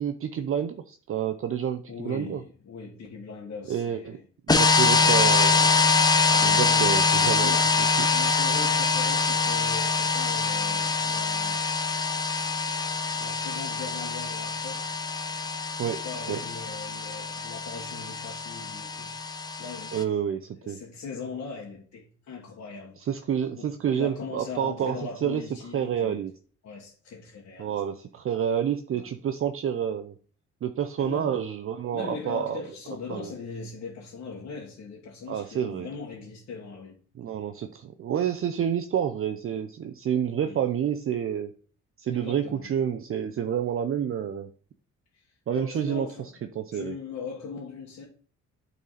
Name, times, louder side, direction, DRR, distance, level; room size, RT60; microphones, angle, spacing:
voice 1, 0.0-2.4 3.7-4.2 4.6-5.7 6.4-7.5 7.8-8.1 15.8-16.4 19.9-20.8 23.0-25.0 25.2-25.4 25.7-26.3 27.6-30.1 30.6-32.6 33.1-33.3 35.3-35.9 37.2-41.5 42.0-44.5 45.5-46.9, right 9 dB, 45° right, 0.6 m, -29 dB
voice 2, 1.9-4.3 4.7-5.2 6.3-11.7 12.4-12.9 13.2-15.0 16.0-19.1 19.6-20.1 20.6-23.0 23.6-26.2 26.6-27.8 28.9-29.1 31.0-31.3 31.9-37.0 38.1-38.2 40.4-40.6 42.1-42.7 45.5-46.3 46.7-48.0, left 5 dB, 60° left, 1.7 m, -40 dB
sound 1, 4.5-20.0, left 4 dB, 15° left, 0.8 m, -24 dB
9.1 x 4.1 x 4.2 m
cardioid pair, 90°, 30 cm